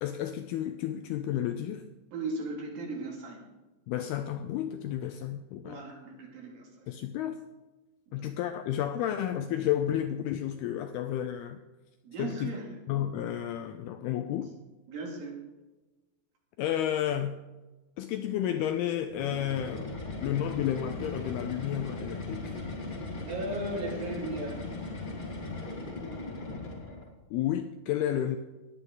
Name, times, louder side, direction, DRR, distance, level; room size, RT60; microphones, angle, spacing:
voice 1, 0.0-1.8 3.9-5.8 6.9-7.4 8.1-11.6 12.2-12.5 12.9-14.5 16.6-17.4 18.0-22.5 27.3-28.4, left 11 dB, 85° left, 8 dB, 2.3 m, -31 dB
voice 2, 2.1-3.5 5.6-6.9 8.1-8.3 12.0-12.7 14.9-15.4 23.2-24.6, right 2 dB, 60° right, -1 dB, 3.9 m, -37 dB
sound 1, 19.1-27.1, left 2 dB, 45° left, 0.6 m, -38 dB
20.0 x 8.3 x 3.9 m, 1.1 s
omnidirectional pair, 5.0 m